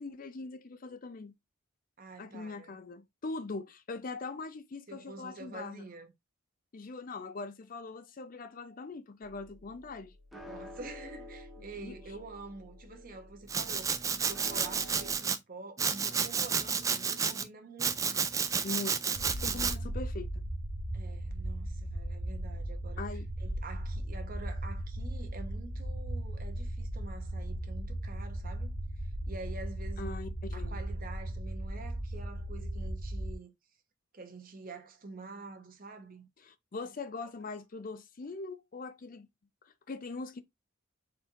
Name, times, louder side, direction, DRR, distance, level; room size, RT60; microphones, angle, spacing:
voice 1, 0.0-1.4 2.2-5.8 6.7-10.1 11.8-12.0 18.6-20.3 23.0-23.3 30.0-30.8 36.4-39.3 39.6-40.4, left 3 dB, 40° left, 0.5 m, -41 dB
voice 2, 2.0-2.8 4.9-6.1 10.3-18.3 19.5-19.7 20.9-23.0 23.4-30.1 30.5-33.5 34.1-36.3, right 3 dB, 45° right, 1.0 m, -47 dB
sound 1, 9.2-15.1, left 1 dB, ahead, 0.8 m, -50 dB
Domestic sounds home sounds, 13.5-15.4 15.8-17.4 17.8-19.7, right 6 dB, 15° right, 0.3 m, -31 dB
sound 2, 19.1-33.4, right 1 dB, 70° right, 1.0 m, -37 dB
4.4 x 2.8 x 3.6 m
head